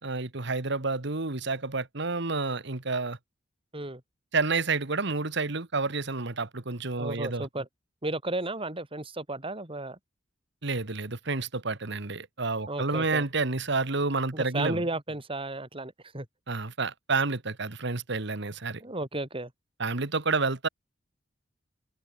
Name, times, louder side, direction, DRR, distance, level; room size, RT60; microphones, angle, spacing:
voice 1, 0.0-3.2 4.3-7.5 10.6-14.8 16.5-18.8 19.8-20.7, right 3 dB, 65° right, 1.8 m, -29 dB
voice 2, 7.0-7.7 8.0-10.0 12.7-13.2 14.3-16.3 18.8-19.5, right 2 dB, 30° right, 4.8 m, -33 dB
head